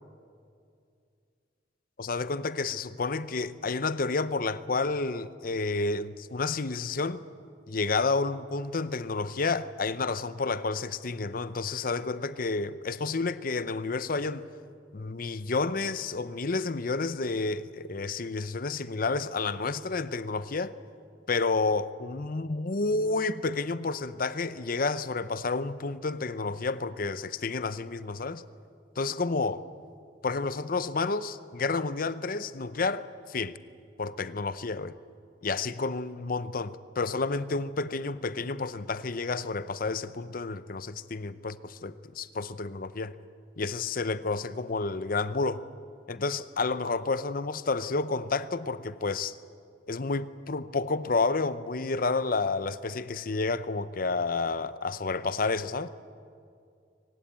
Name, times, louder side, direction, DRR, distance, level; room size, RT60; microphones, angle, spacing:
voice 1, 2.0-7.2 7.7-14.4 14.9-20.7 21.3-28.4 29.0-29.6 30.2-33.6 34.0-35.0 35.4-43.1 43.6-45.6 46.1-49.4 49.9-55.9, left 3 dB, 50° left, 0.7 m, -30 dB
23.5 x 19.0 x 8.9 m
head